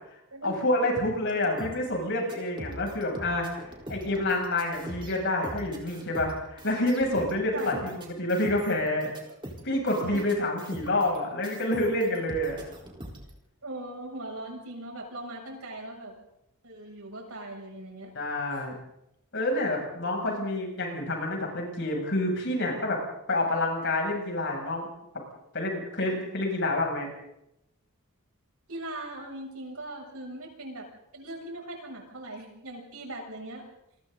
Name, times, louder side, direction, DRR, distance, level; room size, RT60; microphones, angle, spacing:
voice 1, 0.4-9.1 9.6-12.6 18.1-18.7 19.3-23.0 23.3-24.9 25.5-27.1, left 1 dB, 55° left, 0 dB, 7.7 m, -28 dB
sound 1, 1.3-11.2 11.4-13.3, right 1 dB, 20° right, 4.3 m, -42 dB
voice 2, 7.5-7.9 10.1-10.2 12.5-12.6 13.6-16.1 16.6-18.1 28.7-30.9 31.1-33.6, right 1 dB, 70° right, 0 dB, 7.5 m, -40 dB
28.5 x 23.0 x 4.1 m, 0.82 s
head